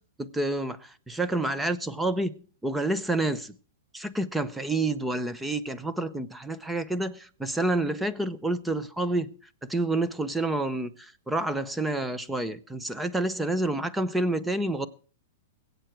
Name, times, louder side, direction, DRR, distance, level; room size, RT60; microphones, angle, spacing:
voice 1, 0.2-2.3 2.6-3.5 3.9-9.3 9.7-14.9, right 2 dB, 5° right, 0.6 m, -28 dB
21.0 x 8.1 x 4.5 m
supercardioid pair, 165°, 0 cm